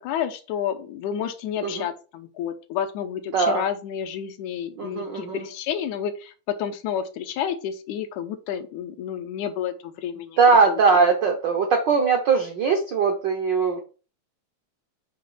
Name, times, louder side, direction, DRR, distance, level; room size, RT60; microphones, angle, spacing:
voice 1, 0.0-10.4 10.7-10.8, left 9 dB, 90° left, 8 dB, 2.3 m, -30 dB
voice 2, 3.3-3.6 4.8-5.4 10.4-13.8, right 5 dB, 70° right, 3 dB, 1.0 m, -20 dB
7.6 x 3.1 x 5.6 m, 0.35 s
omnidirectional pair, 3.3 m